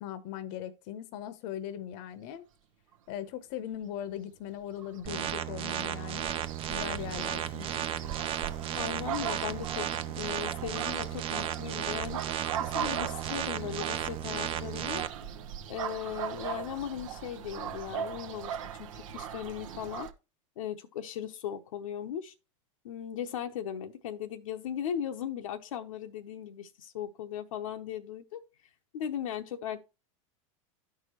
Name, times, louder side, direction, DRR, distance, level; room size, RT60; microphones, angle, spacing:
voice 1, 0.0-2.5 3.1-6.4 6.7-7.9, left 10 dB, 55° left, 0.8 m, -39 dB
sound 1, 4.7-20.1, right 9 dB, 80° right, 0.8 m, -40 dB
sound 2, 5.1-15.1, right 10 dB, 35° right, 0.5 m, -34 dB
voice 2, 8.8-9.9 10.2-12.2 12.6-15.0 15.7-20.1 20.6-22.3 22.8-28.4 28.9-29.8, left 9 dB, 85° left, 0.8 m, -38 dB
12.0 x 4.8 x 2.9 m
supercardioid pair, 115°, 17 cm